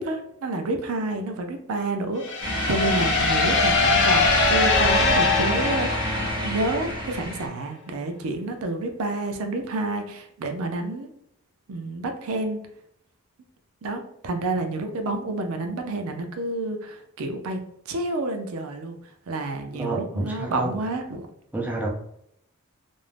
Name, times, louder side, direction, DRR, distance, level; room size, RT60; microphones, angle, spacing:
voice 1, 0.0-11.1 11.7-12.6 13.8-17.6 17.9-19.0 19.3-21.3, right 2 dB, 75° right, 5 dB, 0.5 m, -29 dB
sound 1, 2.2-6.9, left 3 dB, 55° left, 0.5 m, -22 dB
sound 2, 2.4-7.5, right 1 dB, 20° right, 1.1 m, -28 dB
voice 2, 19.7-20.7 21.5-21.9, right 2 dB, 5° right, -2 dB, 0.3 m, -29 dB
2.5 x 2.0 x 3.1 m, 0.75 s
head